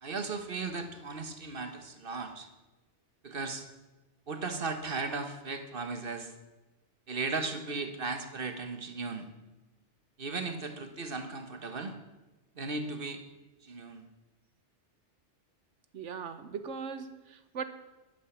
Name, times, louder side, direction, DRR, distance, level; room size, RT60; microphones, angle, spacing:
voice 1, 0.0-2.5 3.2-3.7 4.3-6.3 7.1-9.3 10.2-12.0 12.6-13.2 13.6-14.0, right 4 dB, 50° right, 7 dB, 1.5 m, -36 dB
voice 2, 15.9-17.6, right 6 dB, 90° right, 11 dB, 1.4 m, -39 dB
12.0 x 11.0 x 7.2 m, 1.1 s
omnidirectional pair, 1.2 m